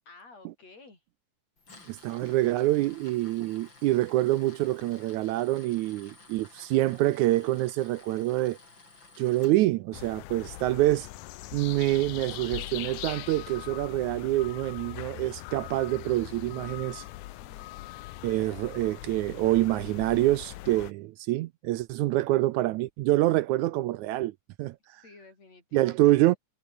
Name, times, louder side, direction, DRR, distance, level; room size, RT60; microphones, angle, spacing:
voice 1, 0.1-1.0 17.4-17.9 25.0-26.2, left 3 dB, 55° left, 7.8 m, -52 dB
Tools, 1.6-9.5, left 3 dB, 35° left, 6.6 m, -53 dB
voice 2, 1.9-8.6 9.2-11.1 11.5-17.0 18.2-24.3 24.6-24.8 25.7-26.4, right 16 dB, 75° right, 2.0 m, -26 dB
sound 1, 9.9-20.9, left 16 dB, 85° left, 2.3 m, -41 dB
omnidirectional pair, 3.6 m